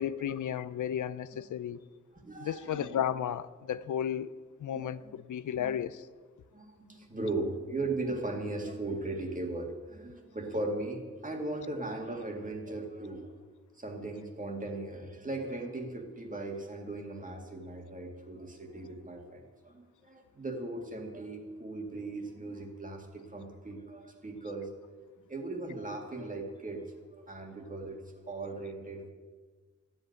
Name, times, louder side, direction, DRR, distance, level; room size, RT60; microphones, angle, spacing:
voice 1, 0.0-1.8 2.4-4.3 4.6-6.1, left 9 dB, 85° left, 0.5 m, -33 dB
voice 2, 2.2-2.9 4.7-5.1 5.6-5.7 6.5-13.3 13.7-24.7 25.2-29.1, right 2 dB, 25° right, 2.1 m, -38 dB
13.0 x 7.9 x 9.3 m
wide cardioid pair, 130°, 30 cm